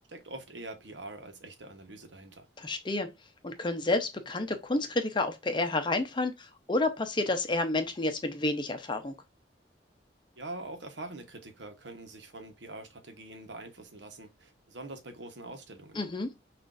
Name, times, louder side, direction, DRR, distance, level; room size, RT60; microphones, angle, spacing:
voice 1, 0.1-2.5 10.4-16.0, right 2 dB, 80° right, 1.0 m, -44 dB
voice 2, 2.6-3.1 3.4-9.1 15.9-16.3, left 2 dB, 25° left, 0.6 m, -30 dB
6.0 x 2.5 x 2.4 m
head